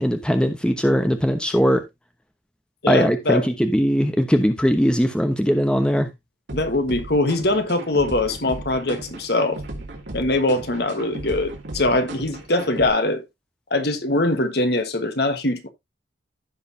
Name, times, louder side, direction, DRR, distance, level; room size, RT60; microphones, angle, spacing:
voice 1, 0.0-1.8 2.9-6.1, equal, 5° left, 1.0 m, -20 dB
voice 2, 2.8-3.4 6.5-9.6 10.1-13.2 13.7-15.7, left 2 dB, 55° left, 1.4 m, -22 dB
sound 1, 6.5-12.9, right 1 dB, 70° right, 2.8 m, -36 dB
15.5 x 5.2 x 2.7 m
head